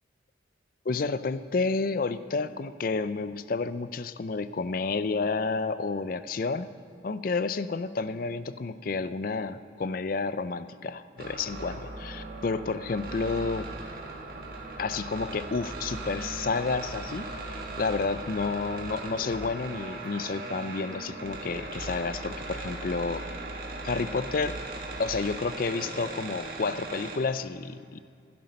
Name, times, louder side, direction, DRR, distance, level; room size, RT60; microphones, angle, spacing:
voice 1, 0.9-6.7 7.0-13.7 14.8-23.2 23.8-24.6 25.0-28.0, left 4 dB, 45° left, 14 dB, 0.4 m, -30 dB
sound 1, 11.2-27.2, right 2 dB, 50° right, 1.5 m, -38 dB
15.5 x 12.0 x 5.2 m, 2.4 s
head